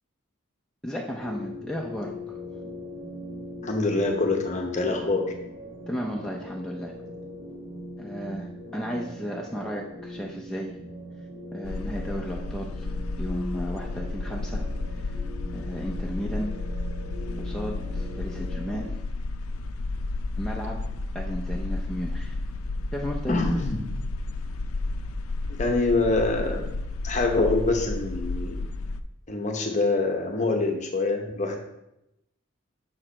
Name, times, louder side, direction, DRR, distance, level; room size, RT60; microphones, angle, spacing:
voice 1, 0.8-2.3 5.9-6.9 8.0-10.7 11.5-12.9 13.2-14.6 14.9-15.2 15.5-16.5 17.4-18.9 20.4-20.8 21.1-22.4 22.9-23.5, equal, 5° left, -2 dB, 0.5 m, -34 dB
sound 1, 1.2-18.9, left 1 dB, 60° right, 2.6 m, -40 dB
voice 2, 3.6-5.3 23.3-23.8 25.6-26.6 27.0-28.6 29.3-31.6, left 3 dB, 35° left, 3 dB, 0.8 m, -25 dB
sound 2, 11.6-29.0, left 2 dB, 90° left, 0.4 m, -32 dB
6.0 x 4.8 x 4.3 m, 0.88 s
head